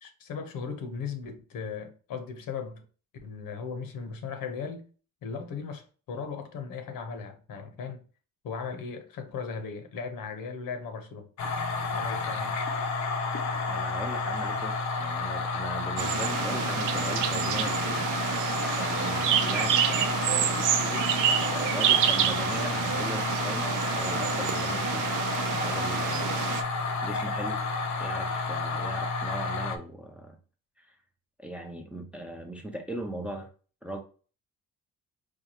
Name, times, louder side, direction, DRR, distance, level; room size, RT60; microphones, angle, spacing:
voice 1, 0.0-2.8 3.2-4.8 5.2-8.0 8.4-11.3 11.9-12.5, left 5 dB, 75° left, 1.0 m, -37 dB
sound 1, 11.4-29.8, left 3 dB, 55° left, 0.6 m, -31 dB
voice 2, 13.5-18.1 18.8-21.1 21.4-25.2 25.4-26.3 27.0-27.6 28.0-30.4 30.8-31.0 31.4-33.5 33.8-34.0, right 1 dB, 5° right, 0.4 m, -39 dB
sound 2, 16.0-26.6, right 9 dB, 65° right, 0.5 m, -28 dB
4.5 x 2.3 x 2.9 m
cardioid pair, 155°, 34 cm